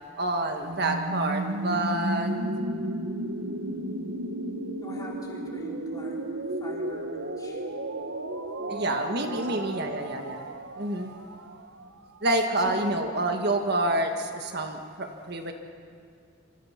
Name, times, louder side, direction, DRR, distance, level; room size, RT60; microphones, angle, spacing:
voice 1, 0.2-2.3 8.7-10.5 10.8-11.1 12.2-15.5, right 1 dB, 50° right, 4 dB, 1.6 m, -28 dB
sound 1, 0.6-12.4, right 1 dB, 75° right, 1.4 m, -33 dB
voice 2, 4.8-6.2 6.6-7.6 8.6-9.8 12.8-13.1, equal, 20° left, -3 dB, 4.1 m, -44 dB
28.0 x 26.0 x 5.9 m, 2.3 s
head